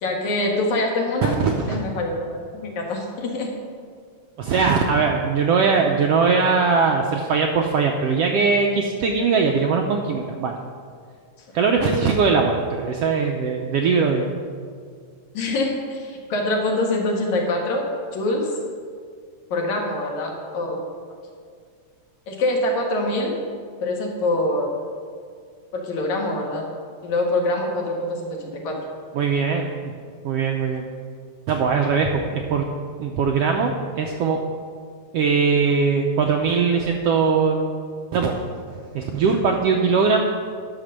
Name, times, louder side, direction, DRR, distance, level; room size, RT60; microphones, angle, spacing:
voice 1, 0.0-1.4 1.7-3.5 15.3-17.8 18.1-18.5 19.5-20.8 22.3-23.3 23.8-24.7 25.7-26.6 27.0-28.8, left 2 dB, 70° left, 0 dB, 2.9 m, -24 dB
voice 2, 1.2-1.8 4.4-10.6 11.5-14.3 29.1-29.9 30.2-30.8 31.5-32.7 33.0-34.4 35.1-37.6 38.1-38.4 38.9-40.2, right 5 dB, 75° right, 2 dB, 1.4 m, -20 dB
11.0 x 6.5 x 6.6 m, 2.1 s
omnidirectional pair, 3.5 m